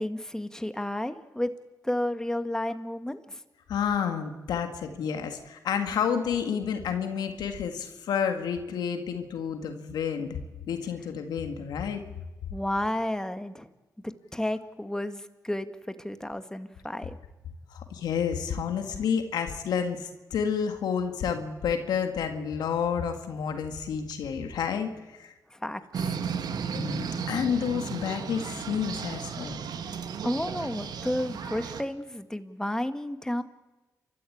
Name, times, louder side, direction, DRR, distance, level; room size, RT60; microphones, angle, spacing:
voice 1, 0.0-1.5 1.8-3.4 12.5-13.7 14.0-17.2 25.5-26.2 30.2-33.4, left 1 dB, 10° left, 9 dB, 2.0 m, -32 dB
voice 2, 3.7-10.3 10.7-12.0 17.7-25.3 26.8-29.6, left 7 dB, 85° left, 6 dB, 2.0 m, -30 dB
sound 1, 25.9-31.8, right 6 dB, 75° right, 1.7 m, -34 dB
30.0 x 13.5 x 8.7 m, 1.1 s
supercardioid pair, 50°, 7 cm